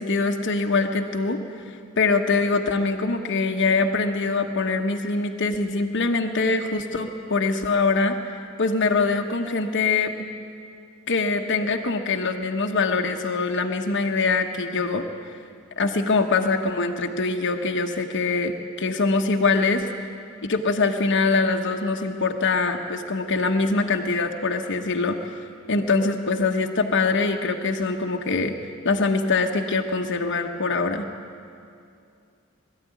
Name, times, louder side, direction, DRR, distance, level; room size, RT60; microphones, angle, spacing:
voice 1, 0.0-1.4 1.6-8.3 8.6-10.1 11.1-15.4 15.8-19.9 20.4-25.3 25.7-28.5 28.8-31.1, left 3 dB, 60° left, 3 dB, 1.2 m, -23 dB
22.0 x 13.5 x 9.4 m, 2.4 s
head